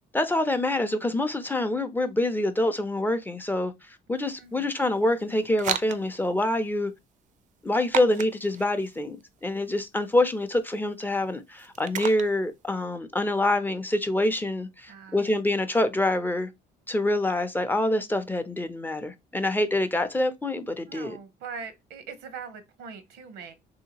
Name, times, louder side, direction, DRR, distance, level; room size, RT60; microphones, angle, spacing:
voice 1, 0.1-6.9 7.6-16.5 16.9-21.2, left 1 dB, 10° left, 0.4 m, -26 dB
sound 1, 4.2-12.8, right 9 dB, 50° right, 0.4 m, -38 dB
voice 2, 4.4-4.7 14.9-15.2 20.9-23.5, right 6 dB, 90° right, 0.8 m, -41 dB
3.2 x 2.8 x 2.8 m
cardioid pair, 110°, 17 cm